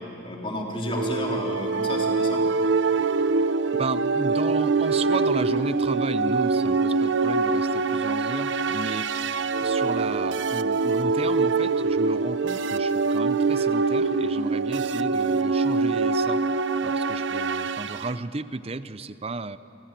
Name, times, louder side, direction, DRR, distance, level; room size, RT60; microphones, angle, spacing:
voice 1, 0.2-2.4, left 1 dB, 25° left, -1 dB, 3.6 m, -31 dB
sound 1, 0.8-18.1, right 4 dB, 65° right, 0.7 m, -24 dB
voice 2, 3.7-16.4 16.8-19.6, right 3 dB, 30° right, 14 dB, 0.6 m, -34 dB
28.5 x 24.5 x 7.6 m, 3.0 s
head